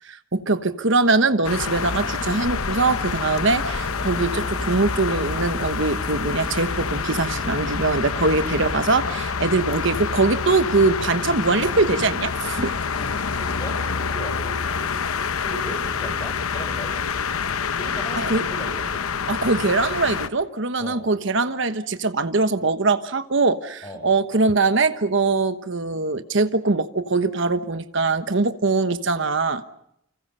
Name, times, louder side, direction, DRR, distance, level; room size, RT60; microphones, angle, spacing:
voice 1, 0.0-12.8 18.1-18.4 19.3-29.6, right 3 dB, 60° right, 11 dB, 1.2 m, -22 dB
sound 1, 1.4-20.3, left 6 dB, 85° left, 0.9 m, -27 dB
sound 2, 1.7-8.9, equal, 25° right, 1.3 m, -36 dB
voice 2, 12.9-15.0 15.4-16.9 17.7-19.0 20.8-21.1 23.8-24.1, equal, 20° left, 4 dB, 7.5 m, -37 dB
29.0 x 26.0 x 5.6 m, 0.77 s
head